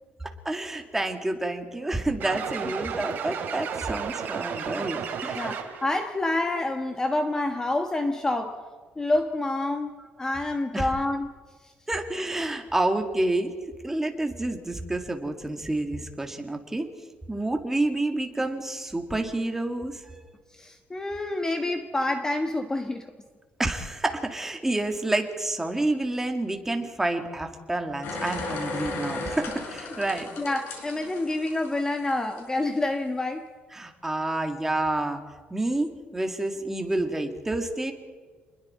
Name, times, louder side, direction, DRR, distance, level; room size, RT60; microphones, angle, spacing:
voice 1, 0.5-5.4 10.0-10.1 10.7-10.9 11.9-13.5 13.8-16.9 17.3-20.0 23.6-30.3 33.7-35.2 35.5-37.9, right 2 dB, 10° right, 4 dB, 2.0 m, -29 dB
sound 1, 2.2-6.0, right 7 dB, 60° right, 3.3 m, -33 dB
voice 2, 5.3-8.6 9.0-11.3 20.6-23.0 30.4-33.4, left 2 dB, 15° left, 5 dB, 1.4 m, -28 dB
sound 2, 28.0-32.4 32.8-32.9, left 3 dB, 85° left, 6.1 m, -35 dB
28.5 x 21.0 x 4.3 m, 1.5 s
cardioid pair, 140°, 4 cm